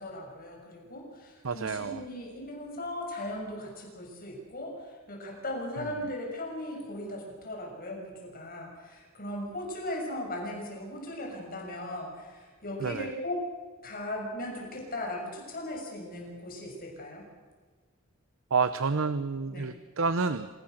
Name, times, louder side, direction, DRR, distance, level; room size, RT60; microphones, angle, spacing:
voice 1, 0.0-13.4 13.8-17.2 19.5-19.7, left 1 dB, 45° left, 0 dB, 6.8 m, -38 dB
voice 2, 1.4-2.0 5.8-5.9 12.8-13.1 18.5-20.5, right 4 dB, 65° right, 12 dB, 0.8 m, -29 dB
27.0 x 19.0 x 6.6 m, 1.5 s
head